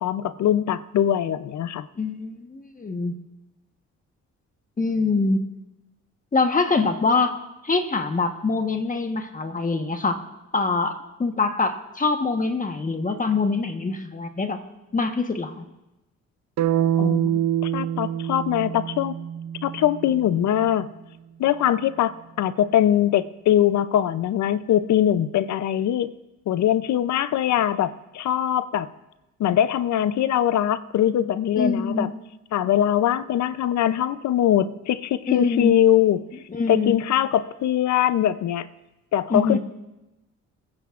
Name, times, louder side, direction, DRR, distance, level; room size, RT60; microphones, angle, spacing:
voice 1, 0.0-1.9 17.0-19.1 19.6-20.9 21.4-26.1 26.5-28.9 29.4-32.1 32.5-36.2 36.7-38.7 39.1-39.6, left 11 dB, 65° left, 14 dB, 0.6 m, -22 dB
voice 2, 1.9-3.1 4.8-5.4 6.3-7.4 7.6-10.2 10.5-10.9 11.2-14.6 14.9-15.6 31.6-32.1 35.3-35.8 36.5-37.0 39.3-39.6, left 4 dB, 25° left, 6 dB, 1.2 m, -24 dB
sound 1, 16.6-20.6, right 10 dB, 65° right, 0.6 m, -26 dB
28.0 x 9.6 x 2.5 m, 0.99 s
cardioid pair, 90°, 30 cm